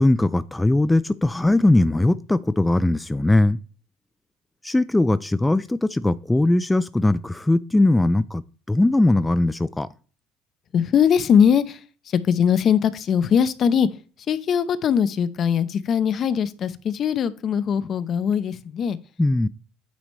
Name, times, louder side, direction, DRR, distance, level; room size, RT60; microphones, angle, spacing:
voice 1, 0.0-3.6 4.6-8.4 8.7-9.9 19.2-19.5, left 2 dB, 10° left, 0.3 m, -20 dB
voice 2, 10.7-14.0 14.3-19.0, left 7 dB, 50° left, 0.7 m, -21 dB
9.2 x 4.0 x 3.2 m
hypercardioid pair, 70°, 0 cm